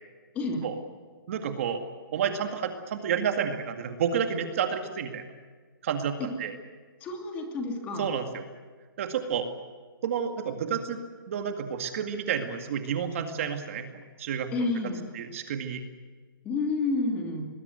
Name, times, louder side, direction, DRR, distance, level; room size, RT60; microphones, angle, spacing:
voice 1, 1.3-1.8 2.1-5.2 5.8-6.5 8.0-8.4 9.0-9.5 10.0-11.0 11.3-14.7 15.1-15.8, right 7 dB, 35° right, 6 dB, 2.1 m, -30 dB
voice 2, 7.0-8.1 14.5-15.0 16.4-17.5, left 3 dB, 15° left, 2 dB, 2.8 m, -29 dB
24.0 x 21.0 x 8.0 m, 1.4 s
hypercardioid pair, 175°, 12 cm